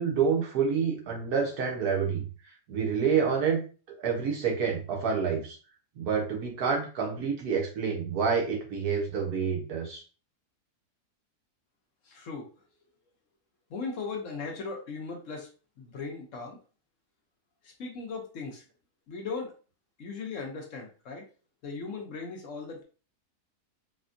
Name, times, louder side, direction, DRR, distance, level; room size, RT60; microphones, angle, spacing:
voice 1, 0.0-2.2 2.7-3.6 4.0-5.6 6.0-10.0, right 6 dB, 70° right, 0 dB, 1.4 m, -28 dB
voice 2, 12.0-12.5 13.7-15.5 15.8-16.6 17.6-18.6 19.1-19.6 20.0-21.2 21.6-22.8, left 4 dB, 60° left, 1 dB, 0.9 m, -38 dB
4.1 x 2.2 x 2.5 m, 0.36 s
omnidirectional pair, 1.7 m